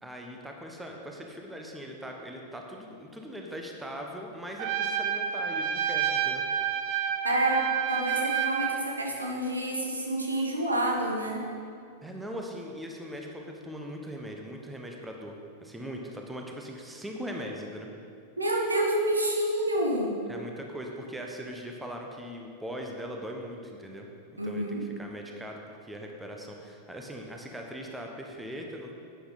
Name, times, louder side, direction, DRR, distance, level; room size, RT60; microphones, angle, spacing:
voice 1, 0.0-6.4 7.2-7.3 12.0-17.9 20.3-24.1 24.4-28.9, equal, 5° right, 1 dB, 1.3 m, -40 dB
Trumpet, 4.6-8.8, right 8 dB, 45° right, 0.7 m, -29 dB
voice 2, 7.2-11.4 18.4-20.1 24.4-24.8, right 1 dB, 80° right, 0 dB, 1.5 m, -28 dB
11.5 x 9.0 x 4.2 m, 2.3 s
figure-of-eight pair, 90°, 0 cm